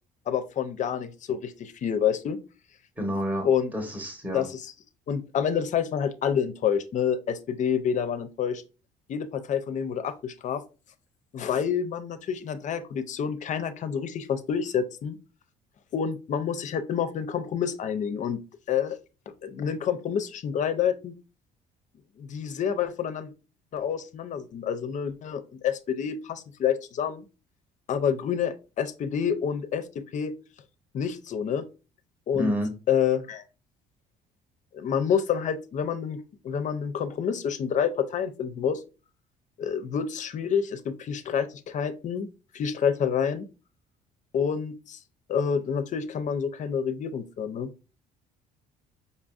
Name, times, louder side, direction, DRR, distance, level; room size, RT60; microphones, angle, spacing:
voice 1, 0.3-2.4 3.4-3.7 4.3-4.7 5.1-8.6 9.1-10.6 11.3-15.2 15.9-18.4 18.7-19.0 19.3-21.1 22.2-23.3 23.7-27.2 27.9-29.9 30.1-30.3 30.9-31.6 32.3-32.5 32.9-33.4 34.7-36.2 36.4-38.8 39.6-42.3 42.5-43.5 44.3-45.0 45.3-47.7, left 7 dB, 45° left, 10 dB, 0.4 m, -28 dB
voice 2, 3.0-4.5 32.3-32.7, equal, 10° right, 3 dB, 0.9 m, -29 dB
5.3 x 2.5 x 2.3 m, 0.32 s
cardioid pair, 110°, 17 cm